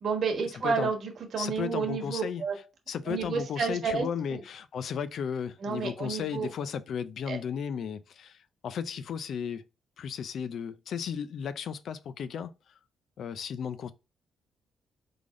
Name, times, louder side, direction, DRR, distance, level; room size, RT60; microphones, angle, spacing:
voice 1, 0.0-2.6 3.1-4.4 5.6-6.5 7.3-7.4, right 5 dB, 60° right, 1.3 m, -31 dB
voice 2, 1.4-2.4 2.9-9.7 10.0-12.8 13.2-13.9, left 7 dB, 70° left, 0.5 m, -35 dB
3.8 x 3.4 x 3.7 m
cardioid pair, 95°, 0 cm